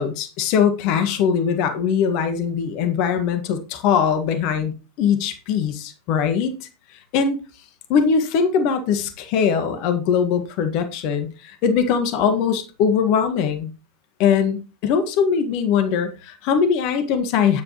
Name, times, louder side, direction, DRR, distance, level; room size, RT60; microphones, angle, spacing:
voice 1, 0.0-6.7 7.1-7.4 7.9-13.7 14.2-17.6, left 7 dB, 45° left, 8 dB, 1.6 m, -21 dB
9.7 x 9.5 x 3.0 m, 0.31 s
figure-of-eight pair, 90°, 0 cm